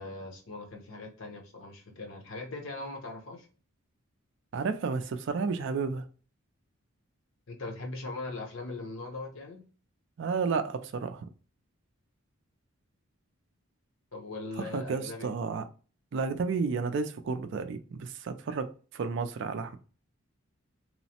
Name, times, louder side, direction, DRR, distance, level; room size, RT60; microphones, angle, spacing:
voice 1, 0.0-3.5 7.5-9.6 14.1-15.3, left 2 dB, 60° left, 0.8 m, -40 dB
voice 2, 4.5-6.0 10.2-11.3 14.6-15.7 16.1-19.8, right 4 dB, 55° right, 0.3 m, -32 dB
3.0 x 2.0 x 2.8 m
head